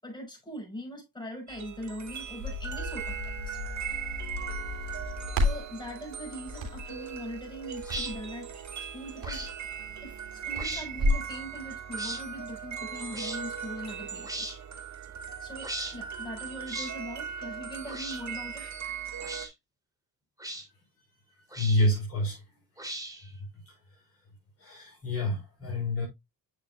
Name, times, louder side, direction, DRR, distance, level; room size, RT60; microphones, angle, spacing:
voice 1, 0.0-4.0 5.3-9.5 10.0-15.0 15.4-18.8, equal, 10° left, 6.1 m, -41 dB
sound 1, 1.5-19.5, right 8 dB, 45° right, 1.7 m, -39 dB
Crackle, 2.1-11.3, left 2 dB, 65° right, 3.6 m, -34 dB
sound 2, 7.8-8.1 9.2-9.5 10.5-10.9 12.0-12.2 13.1-13.4 14.2-14.6 15.6-15.9 16.7-16.9 17.9-18.2 19.2-19.5 20.4-20.6 21.5-21.9 22.8-23.3, right 1 dB, 10° right, 2.9 m, -37 dB
voice 2, 21.5-22.4 23.2-24.0 24.6-26.1, left 1 dB, 40° left, 5.2 m, -29 dB
8.9 x 6.4 x 2.3 m
cardioid pair, 70°, 38 cm